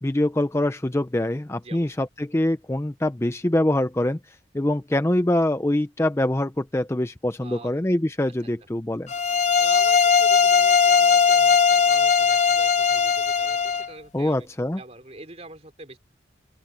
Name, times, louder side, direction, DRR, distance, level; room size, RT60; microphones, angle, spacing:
voice 1, 0.0-9.1 14.1-14.8, left 1 dB, 15° left, 0.5 m, -24 dB
voice 2, 1.6-2.0 7.4-7.7 9.6-14.5 14.8-16.0, right 2 dB, 35° right, 3.7 m, -44 dB
sound 1, 9.1-13.9, left 6 dB, 40° left, 0.9 m, -19 dB
open air
head